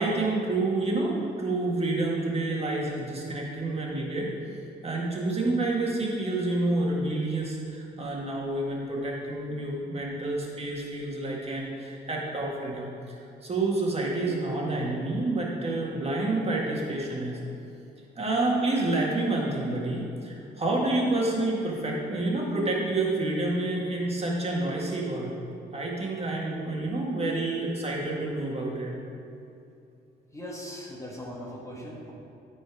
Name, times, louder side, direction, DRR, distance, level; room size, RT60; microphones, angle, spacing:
voice 1, 0.0-4.3 4.8-17.4 18.2-25.3 25.7-28.9, right 2 dB, 30° right, -3 dB, 1.9 m, -28 dB
voice 2, 30.3-32.1, equal, 15° left, -3 dB, 1.4 m, -39 dB
13.5 x 4.5 x 4.8 m, 2.7 s
cardioid pair, 90°, 20 cm